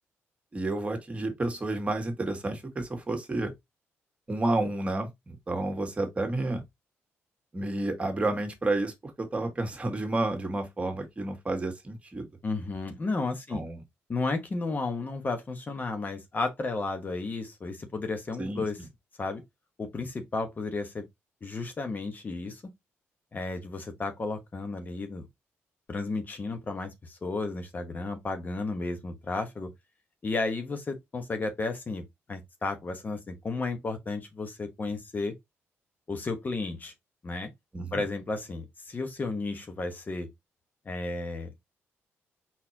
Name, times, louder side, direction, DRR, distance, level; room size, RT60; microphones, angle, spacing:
voice 1, 0.5-3.5 4.3-6.6 7.5-12.3 13.5-13.8 18.4-18.6 37.7-38.0, right 2 dB, 25° right, 1.8 m, -30 dB
voice 2, 12.4-13.6 14.1-18.8 19.2-19.4 19.8-21.0 21.4-22.6 23.3-25.3 25.9-29.7 30.2-35.3 36.1-36.9 37.2-37.5 37.9-40.3 40.8-41.7, left 3 dB, 35° left, 1.2 m, -33 dB
4.2 x 4.1 x 2.9 m
cardioid pair, 85°, 5 cm